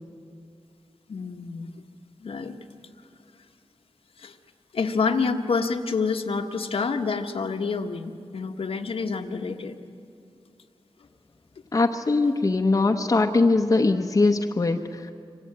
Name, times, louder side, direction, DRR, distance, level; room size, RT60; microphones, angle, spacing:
voice 1, 1.1-1.7 2.2-2.6 4.2-4.4 4.7-9.8, left 4 dB, 75° left, 3 dB, 1.4 m, -28 dB
voice 2, 11.7-15.1, left 3 dB, 35° left, 3 dB, 1.0 m, -21 dB
25.5 x 25.0 x 8.9 m, 2.3 s
wide cardioid pair, 120°, 10 cm